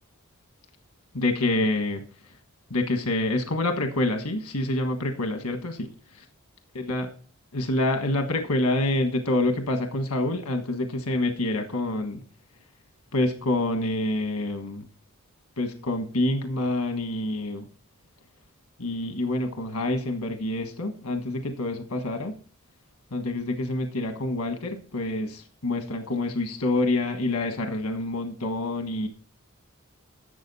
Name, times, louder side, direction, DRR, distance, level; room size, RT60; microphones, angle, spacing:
voice 1, 1.1-2.0 2.7-6.3 6.7-7.1 7.5-12.2 13.1-14.8 15.6-17.6 18.8-22.4 23.1-29.1, left 2 dB, 85° left, 6 dB, 1.4 m, -27 dB
11.5 x 7.4 x 4.1 m, 0.39 s
head